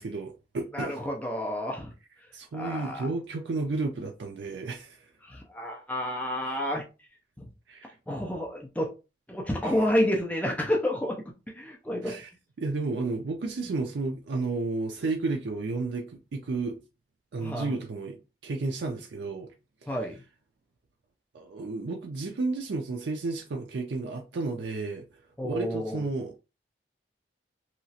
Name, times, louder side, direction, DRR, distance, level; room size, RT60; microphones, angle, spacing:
voice 1, 0.0-1.0 2.3-5.0 6.5-6.6 7.7-8.0 9.6-9.8 12.0-12.3 12.6-16.8 17.3-18.2 18.4-19.5 19.8-19.9 21.3-25.1 25.4-26.4, right 3 dB, 70° right, 0.4 m, -32 dB
voice 2, 0.7-1.9 2.6-3.1 5.2-6.8 7.4-7.5 8.1-8.9 9.3-11.2 11.5-12.2 17.4-17.7 19.9-20.2 25.4-26.0, left 1 dB, 10° left, 0.4 m, -29 dB
2.9 x 2.3 x 2.7 m
head